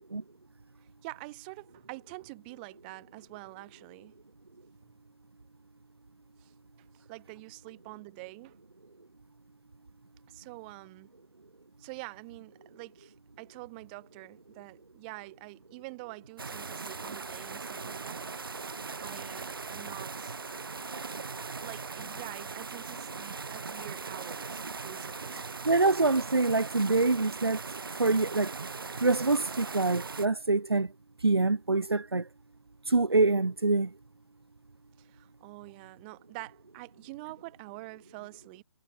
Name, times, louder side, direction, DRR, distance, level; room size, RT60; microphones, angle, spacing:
voice 1, 1.0-4.1 6.4-6.5 6.9-8.6 10.3-11.1 11.8-18.3 19.0-20.4 21.6-25.4 35.0-38.6, right 27 dB, 25° right, 2.5 m, -46 dB
sound 1, 16.4-30.3, right 4 dB, 65° right, 1.8 m, -39 dB
voice 2, 25.6-27.6 28.0-28.5 29.0-30.9 31.2-32.3 32.9-33.9, right 3 dB, 85° right, 0.6 m, -25 dB
figure-of-eight pair, 135°, 13 cm